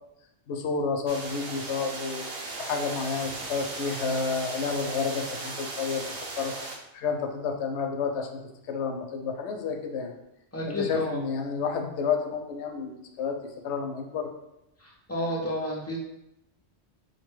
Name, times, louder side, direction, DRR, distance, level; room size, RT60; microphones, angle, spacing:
voice 1, 0.5-2.3 2.6-6.1 6.4-6.5 6.9-10.2 10.7-14.3, left 5 dB, 80° left, 4 dB, 0.8 m, -30 dB
sound 1, 1.1-6.8, right 2 dB, 65° right, 0.8 m, -37 dB
voice 2, 10.5-11.2 14.8-16.0, left 1 dB, 20° left, -4 dB, 0.4 m, -31 dB
4.3 x 2.2 x 3.1 m, 0.87 s
omnidirectional pair, 1.1 m